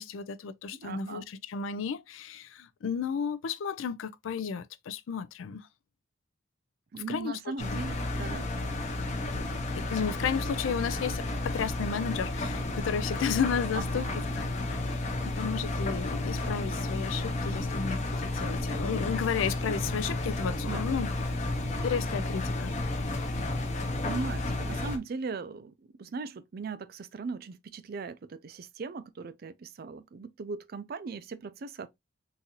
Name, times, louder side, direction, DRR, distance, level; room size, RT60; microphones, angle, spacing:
voice 1, 0.0-5.7 6.9-7.4 7.7-7.8 9.8-14.8 15.3-21.1 21.6-22.8, left 6 dB, 85° left, 0.4 m, -33 dB
voice 2, 0.8-1.2 6.9-8.5 13.7-14.2 20.6-20.8 23.8-25.7 26.0-31.9, right 4 dB, 50° right, 0.4 m, -39 dB
Engine, 7.6-25.0, left 2 dB, 35° left, 0.7 m, -32 dB
3.9 x 2.5 x 2.8 m
head